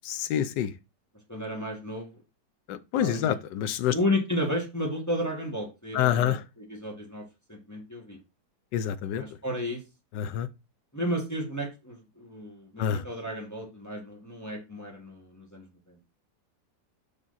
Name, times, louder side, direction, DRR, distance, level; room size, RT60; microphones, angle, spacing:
voice 1, 0.0-0.7 2.7-3.9 5.9-6.4 8.7-9.2 10.1-10.5 12.8-13.0, left 10 dB, 85° left, 1.3 m, -27 dB
voice 2, 1.3-2.1 3.0-3.3 3.9-8.2 9.1-9.8 10.9-16.0, left 1 dB, 10° left, 1.5 m, -33 dB
5.4 x 5.2 x 4.0 m
omnidirectional pair, 1.9 m